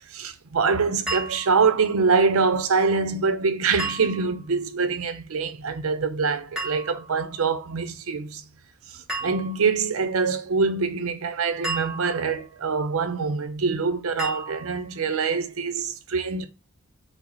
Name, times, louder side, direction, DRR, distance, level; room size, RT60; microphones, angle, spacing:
voice 1, 0.1-8.4 9.2-16.5, right 4 dB, 80° right, 0.6 m, -24 dB
sound 1, 1.1-1.8 3.8-4.5 6.6-7.2 9.1-9.8 11.6-12.5 14.2-14.9, right 2 dB, 5° right, 1.6 m, -33 dB
5.7 x 2.0 x 4.0 m
head